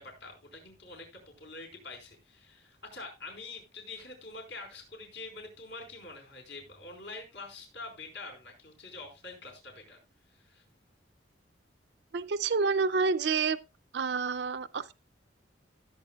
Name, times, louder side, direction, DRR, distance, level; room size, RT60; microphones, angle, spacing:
voice 1, 0.0-10.0 10.3-10.6, left 3 dB, 70° left, 4.8 m, -46 dB
voice 2, 12.1-13.6 13.9-14.9, right 4 dB, 65° right, 0.5 m, -28 dB
17.0 x 8.4 x 2.3 m
head